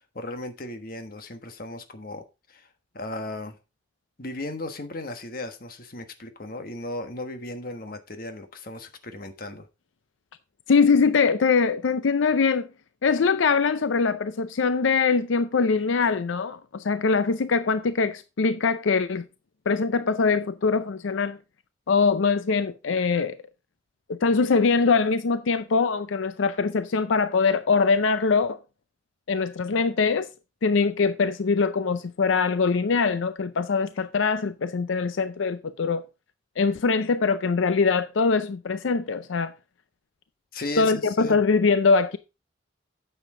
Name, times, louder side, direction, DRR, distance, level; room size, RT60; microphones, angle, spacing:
voice 1, 0.1-3.6 4.2-9.7 40.5-41.4, left 2 dB, 50° left, 1.3 m, -36 dB
voice 2, 10.7-12.7 13.0-19.2 19.7-21.4 21.9-23.4 24.1-28.6 29.3-30.3 30.6-36.0 36.6-39.5 40.8-42.2, left 4 dB, 85° left, 0.5 m, -22 dB
9.1 x 7.2 x 3.7 m
head